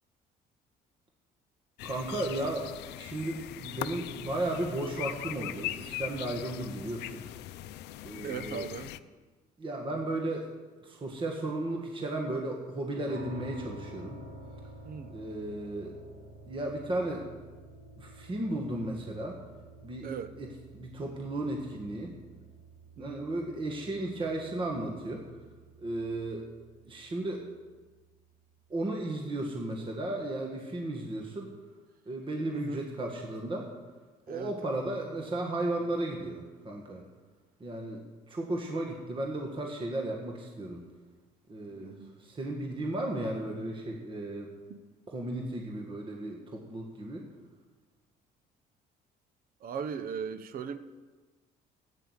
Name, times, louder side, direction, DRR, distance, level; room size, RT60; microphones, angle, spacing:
sound 1, 1.8-9.0, left 14 dB, 85° left, 0.6 m, -40 dB
voice 1, 1.8-7.2 8.0-8.7 9.6-10.5 10.8-14.2 15.1-15.9 16.5-17.3 18.0-19.4 19.8-20.1 20.4-20.5 20.7-22.2 23.0-25.2 25.8-26.4 26.8-27.4 28.7-31.5 32.1-33.7 34.3-37.0 37.6-40.9 41.5-44.5 45.1-47.3, right 1 dB, 30° right, 1 dB, 1.9 m, -35 dB
voice 2, 8.2-8.9 14.8-15.2 18.7-18.9 20.0-20.3 23.0-23.3 32.5-32.8 34.3-34.5 41.7-42.2 44.7-44.8 49.6-50.8, right 7 dB, 60° right, 11 dB, 1.0 m, -38 dB
sound 2, 13.1-27.9, right 1 dB, 90° right, 5.8 m, -50 dB
13.5 x 9.1 x 8.2 m, 1.3 s
cardioid pair, 110°, 17 cm